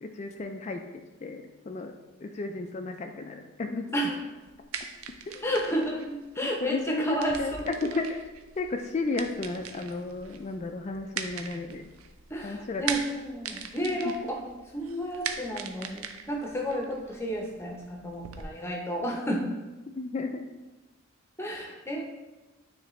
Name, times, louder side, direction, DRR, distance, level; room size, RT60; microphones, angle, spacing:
voice 1, 0.0-0.8 1.2-1.9 2.2-3.9 5.2-5.4 6.4-8.2 8.6-11.9 12.4-12.8 14.0-14.1 20.0-20.5, left 3 dB, 35° left, 5 dB, 0.3 m, -33 dB
sound 1, 4.4-18.4, right 7 dB, 90° right, 0.5 m, -41 dB
voice 2, 5.4-7.6 7.9-8.0 12.3-19.5 21.4-22.0, equal, 10° left, 0 dB, 0.7 m, -32 dB
9.2 x 3.3 x 3.1 m, 1.1 s
head